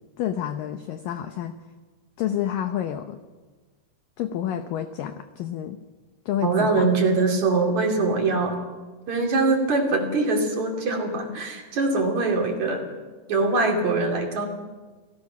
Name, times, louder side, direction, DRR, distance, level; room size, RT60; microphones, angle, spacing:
voice 1, 0.2-1.6 2.2-3.2 4.2-5.8 6.3-6.9, left 10 dB, 80° left, 7 dB, 2.0 m, -29 dB
voice 2, 6.4-8.6 9.1-12.9 13.3-14.5, right 3 dB, 45° right, 1 dB, 3.8 m, -23 dB
29.0 x 17.5 x 6.0 m, 1.3 s
omnidirectional pair, 5.1 m